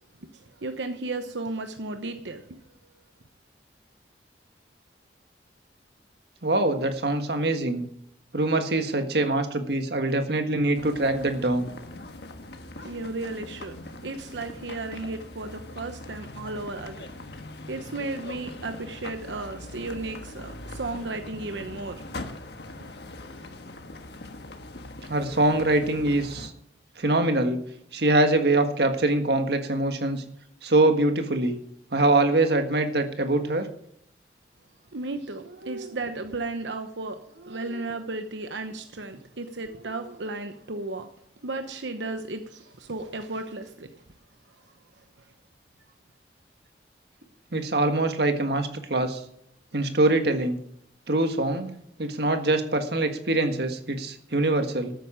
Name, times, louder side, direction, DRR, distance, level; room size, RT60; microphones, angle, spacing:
voice 1, 0.3-2.4 12.8-13.8 14.0-17.1 17.7-22.0 34.9-41.1 41.4-43.9, right 2 dB, 85° right, 7 dB, 1.0 m, -34 dB
voice 2, 6.4-7.9 8.3-11.7 25.1-26.5 27.0-27.6 27.9-30.2 30.6-31.6 31.9-33.7 47.5-49.2 49.7-50.6 51.1-51.7 52.0-54.9, right 2 dB, 65° right, 7 dB, 1.6 m, -23 dB
sound 1, 10.7-26.5, left 2 dB, 65° left, 1.4 m, -41 dB
13.5 x 9.2 x 5.0 m, 0.71 s
head